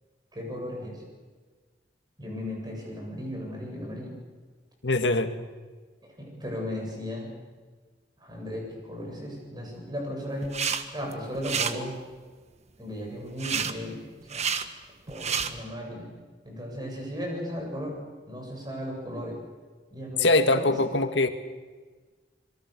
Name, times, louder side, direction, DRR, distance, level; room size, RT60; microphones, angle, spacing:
voice 1, 0.3-1.0 2.2-4.2 6.2-7.3 8.2-10.6 10.9-11.9 12.8-14.5 15.1-16.1 16.4-18.0 18.3-19.4 19.9-20.9, equal, 25° right, 0 dB, 7.9 m, -36 dB
voice 2, 4.8-5.3 20.2-21.3, left 2 dB, 85° left, 8 dB, 1.8 m, -22 dB
sound 1, 10.4-10.8 11.1-11.7 13.4-13.7 14.2-14.6 15.1-15.5, right 6 dB, 40° right, 1.4 m, -29 dB
26.5 x 22.5 x 6.9 m, 1.4 s
head